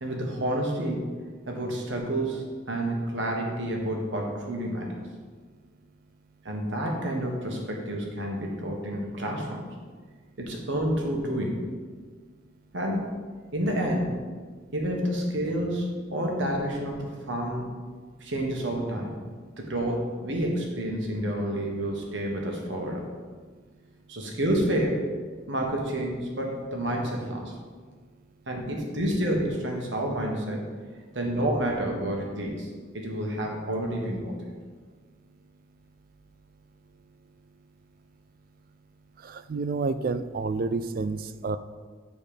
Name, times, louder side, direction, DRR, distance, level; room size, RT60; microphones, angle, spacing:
voice 1, 0.0-1.1 1.5-4.9 6.4-9.7 10.4-11.6 12.7-13.0 13.5-14.2 14.7-17.6 18.2-19.2 19.6-23.0 24.1-25.0 25.5-27.5 28.5-30.7 31.1-34.4, right 1 dB, 70° right, 0 dB, 1.5 m, -29 dB
voice 2, 39.2-41.6, right 4 dB, 45° right, 13 dB, 0.3 m, -29 dB
9.2 x 4.3 x 5.0 m, 1.5 s
head